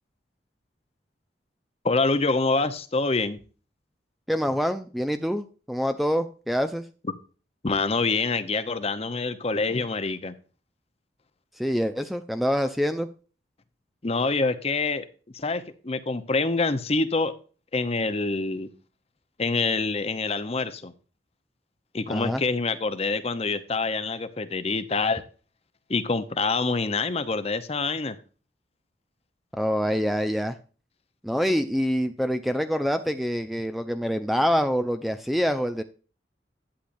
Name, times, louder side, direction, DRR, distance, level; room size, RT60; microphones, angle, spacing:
voice 1, 1.8-3.4 7.6-10.3 14.0-15.1 15.3-17.3 17.7-18.7 19.4-20.9 21.9-25.2 25.9-28.2, left 3 dB, 35° left, 11 dB, 0.8 m, -26 dB
voice 2, 4.3-6.8 11.6-13.1 22.1-22.4 29.5-30.6 31.2-35.8, equal, ahead, 9 dB, 0.5 m, -26 dB
11.5 x 8.7 x 2.6 m, 0.37 s
head